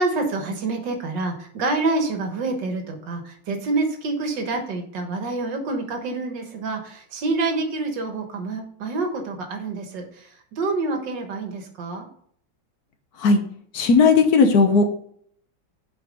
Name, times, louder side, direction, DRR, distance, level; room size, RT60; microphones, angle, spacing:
voice 1, 0.0-12.1, right 3 dB, 75° right, 4 dB, 2.0 m, -27 dB
voice 2, 13.7-14.9, left 4 dB, 60° left, 6 dB, 1.4 m, -16 dB
7.2 x 4.4 x 5.1 m, 0.62 s
omnidirectional pair, 1.9 m